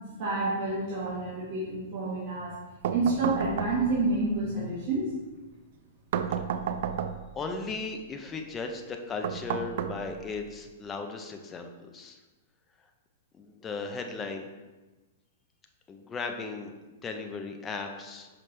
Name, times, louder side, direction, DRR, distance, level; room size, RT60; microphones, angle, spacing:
voice 1, 0.2-2.5 2.9-5.1, right 3 dB, 45° right, -8 dB, 1.5 m, -29 dB
sound 1, 2.8-4.1 6.1-7.4 9.2-10.4, right 8 dB, 60° right, 0.3 m, -32 dB
voice 2, 7.3-12.2 13.3-14.5 15.9-16.7 17.0-18.3, left 4 dB, 15° left, 4 dB, 0.5 m, -36 dB
5.8 x 5.0 x 3.3 m, 1.2 s
hypercardioid pair, 150°, 0 cm